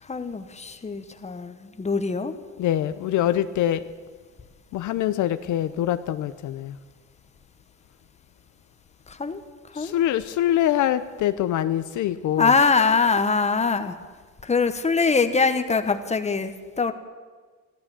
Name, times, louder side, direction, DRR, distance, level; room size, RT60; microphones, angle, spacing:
voice 1, 0.0-2.3 9.1-9.4 9.7-9.9 12.4-14.0 14.4-16.9, left 4 dB, 20° left, 1.1 m, -23 dB
voice 2, 2.6-3.8 4.7-6.8 9.7-12.5, left 12 dB, 75° left, 0.6 m, -24 dB
13.5 x 12.5 x 7.5 m
cardioid pair, 90°, 30 cm